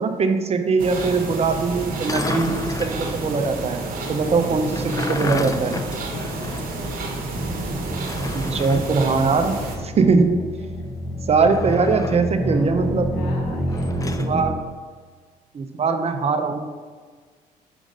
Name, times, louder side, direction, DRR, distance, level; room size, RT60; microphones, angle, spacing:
voice 1, 0.0-3.8 4.1-5.8 8.3-9.6 9.8-10.4 11.3-13.1 14.2-14.6 15.5-16.6, right 4 dB, 40° right, 7 dB, 0.6 m, -21 dB
sound 1, 0.8-9.8, right 2 dB, 60° right, 1.2 m, -30 dB
sound 2, 1.9-3.0 4.5-6.8 7.1-7.2 8.0-8.9 11.3-12.3 13.7-14.3, left 2 dB, 20° left, 0.5 m, -31 dB
voice 2, 6.1-6.6 10.0-10.3 10.6-11.2 13.1-14.3, left 3 dB, 70° left, 1 dB, 1.3 m, -41 dB
sound 3, 7.3-14.5, equal, ahead, 0.9 m, -29 dB
5.0 x 3.6 x 5.1 m, 1.5 s
supercardioid pair, 60°, 17 cm